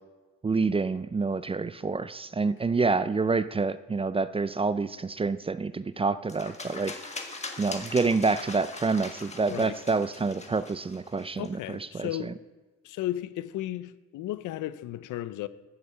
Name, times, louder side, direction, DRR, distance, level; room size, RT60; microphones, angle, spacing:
voice 1, 0.4-6.9 7.6-12.3, right 4 dB, 20° right, 0.4 m, -27 dB
sound 1, 6.3-11.5, left 3 dB, 20° left, 1.5 m, -41 dB
voice 2, 11.4-12.4 12.8-15.5, left 14 dB, 85° left, 0.6 m, -34 dB
15.5 x 6.5 x 6.7 m
cardioid pair, 90°, 30 cm